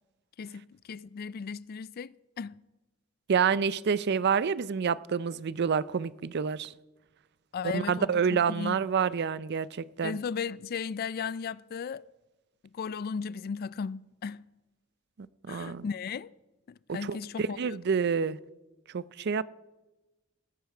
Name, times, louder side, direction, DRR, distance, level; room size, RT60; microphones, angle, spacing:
voice 1, 0.4-2.5 7.5-8.8 10.0-12.0 12.7-14.5 15.5-16.3 16.9-17.8, left 6 dB, 50° left, 0.3 m, -36 dB
voice 2, 3.3-6.7 7.6-10.2 15.4-15.8 16.9-18.4 18.9-19.4, right 6 dB, 55° right, 0.5 m, -28 dB
18.5 x 9.3 x 4.9 m
head